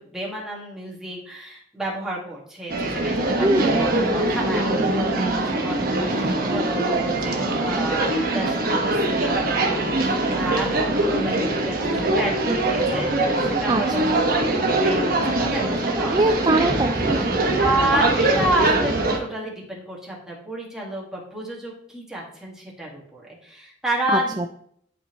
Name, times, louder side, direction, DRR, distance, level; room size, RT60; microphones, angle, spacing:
voice 1, 0.0-10.0 10.3-13.1 13.4-16.6 17.6-24.4, right 1 dB, 5° right, -4 dB, 1.8 m, -30 dB
sound 1, 2.7-19.2, right 2 dB, 55° right, 1.2 m, -22 dB
voice 2, 3.4-3.9 13.7-13.8 16.1-17.3 24.1-24.5, right 2 dB, 25° right, 5 dB, 0.4 m, -22 dB
11.0 x 4.2 x 3.0 m, 0.66 s
head